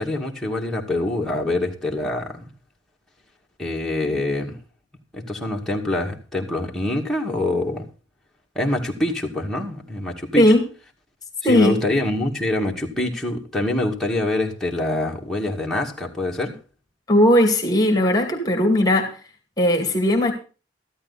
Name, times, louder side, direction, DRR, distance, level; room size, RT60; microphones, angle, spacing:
voice 1, 0.0-2.5 3.6-4.6 5.1-7.9 8.6-10.4 11.4-16.6, left 1 dB, ahead, -2 dB, 2.2 m, -25 dB
voice 2, 11.4-11.7 17.1-19.2 19.6-20.3, left 1 dB, 20° left, 3 dB, 2.2 m, -17 dB
14.0 x 12.0 x 4.1 m, 0.35 s
head